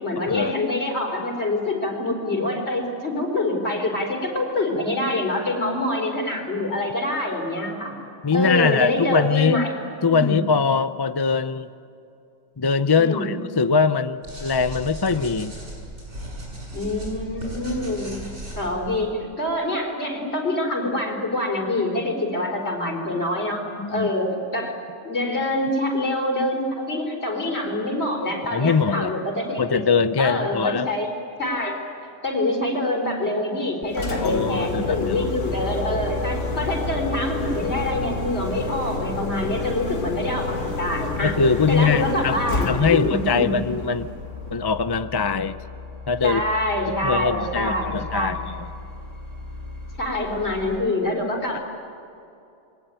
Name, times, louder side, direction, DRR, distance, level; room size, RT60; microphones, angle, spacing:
voice 1, 0.0-7.9 8.3-9.7 10.1-10.4 13.0-13.4 16.7-18.2 18.6-24.8 25.0-29.8 30.2-31.1 31.4-41.3 41.7-43.5 46.2-48.4 50.0-51.6, left 1 dB, 60° left, 2 dB, 4.7 m, -25 dB
voice 2, 8.2-9.6 10.0-11.7 12.6-15.5 23.8-24.1 28.5-29.1 29.6-30.9 34.2-35.3 39.5-39.7 41.2-42.4 42.6-44.1 44.5-45.6 46.1-46.4 47.0-48.6 51.5-51.6, left 5 dB, 30° left, 12 dB, 0.5 m, -22 dB
sound 1, 14.2-19.0, right 1 dB, 70° right, 7.9 m, -36 dB
Engine, 33.8-44.8, left 3 dB, 85° left, 2.1 m, -30 dB
sound 2, 34.7-50.8, left 2 dB, 30° right, 3.5 m, -36 dB
27.0 x 22.5 x 9.1 m, 2.6 s
omnidirectional pair, 1.2 m